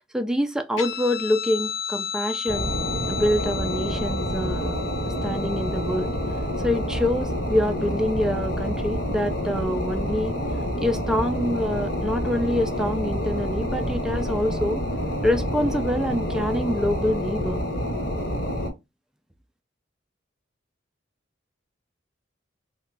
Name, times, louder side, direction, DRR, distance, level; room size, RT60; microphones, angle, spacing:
voice 1, 0.0-2.7 3.1-4.8 5.0-6.1 6.6-10.4 10.8-14.8 15.2-17.6, left 1 dB, 5° right, 0.3 m, -26 dB
Guitar, 0.8-7.7, left 7 dB, 80° left, 0.5 m, -34 dB
sound 1, 2.5-18.7, equal, 55° left, 1.2 m, -28 dB
3.1 x 2.2 x 3.8 m
head